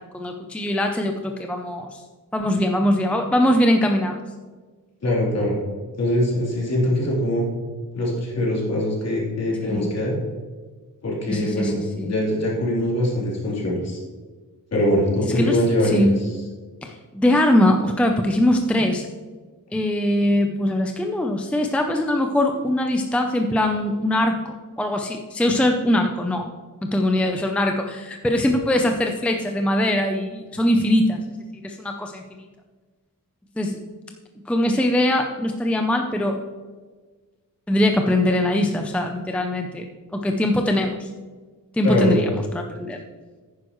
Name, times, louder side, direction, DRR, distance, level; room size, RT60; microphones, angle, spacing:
voice 1, 0.0-2.0 2.3-4.2 9.7-9.9 11.3-12.1 15.3-16.2 16.8-19.1 19.7-26.5 26.8-31.2 31.6-32.5 33.6-33.8 34.5-36.4 37.7-39.8 40.1-41.1 41.7-43.0, left 1 dB, 5° left, 3 dB, 0.5 m, -22 dB
voice 2, 5.0-5.6 6.0-7.5 7.9-10.1 11.0-11.7 12.0-14.0 14.7-16.1 41.8-42.2, left 1 dB, 50° left, -4 dB, 3.4 m, -22 dB
10.5 x 9.5 x 3.1 m, 1.4 s
wide cardioid pair, 170°, 34 cm